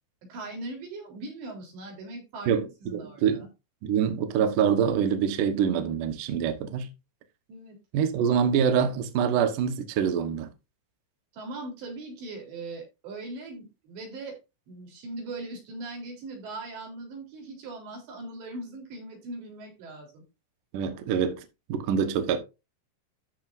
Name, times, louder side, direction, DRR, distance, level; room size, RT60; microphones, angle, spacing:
voice 1, 0.3-2.5 2.8-3.4 7.5-7.8 11.3-14.4 14.7-20.2, right 2 dB, 60° right, 5.8 m, -40 dB
voice 2, 2.9-3.5 3.8-6.9 7.9-10.5 20.7-21.4 21.7-22.4, right 7 dB, 75° right, 1.9 m, -25 dB
13.5 x 7.4 x 2.6 m
omnidirectional pair, 5.9 m